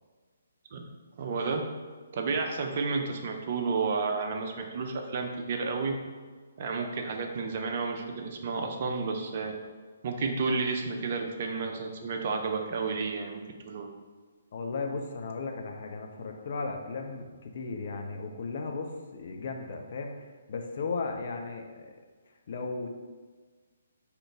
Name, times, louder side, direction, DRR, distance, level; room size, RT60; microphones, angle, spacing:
voice 1, 1.2-1.7 2.1-5.9 6.6-9.5 10.0-13.9, right 4 dB, 40° right, 3 dB, 0.5 m, -31 dB
voice 2, 14.5-20.1 20.5-22.0 22.5-22.9, left 4 dB, 45° left, 3 dB, 0.5 m, -35 dB
3.7 x 2.9 x 3.5 m, 1.5 s
figure-of-eight pair, 130°, 0 cm